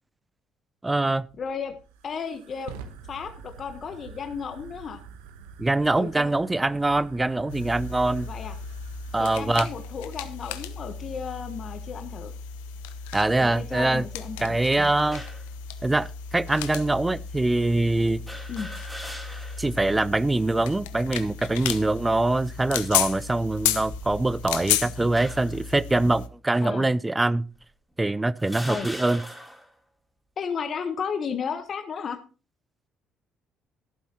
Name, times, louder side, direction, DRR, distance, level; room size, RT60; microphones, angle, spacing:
voice 1, 0.8-1.2 5.6-8.3 9.1-9.7 13.1-14.0 14.4-15.2 15.8-18.2 19.6-27.5 28.0-29.2, right 2 dB, 15° right, 0.5 m, -24 dB
Fire, 1.2-10.1, right 6 dB, 85° right, 1.0 m, -46 dB
voice 2, 1.4-1.8 2.0-2.7 3.1-5.0 6.0-6.3 8.2-8.6 9.2-12.3 13.4-14.9 18.5-18.7 26.6-26.9 28.7-28.9 30.4-32.2, left 6 dB, 50° left, 1.1 m, -34 dB
sound 1, 7.5-26.3, left 9 dB, 85° left, 0.8 m, -34 dB
sound 2, 15.1-15.5 16.3-16.4 18.3-19.7 20.1-20.2 21.4-21.8 22.5-22.8 23.7-24.5 25.2-25.7 26.5-26.7 27.5-27.6 28.4-29.7, equal, ahead, 3.1 m, -40 dB
13.0 x 11.5 x 2.9 m
hypercardioid pair, 55°, 0 cm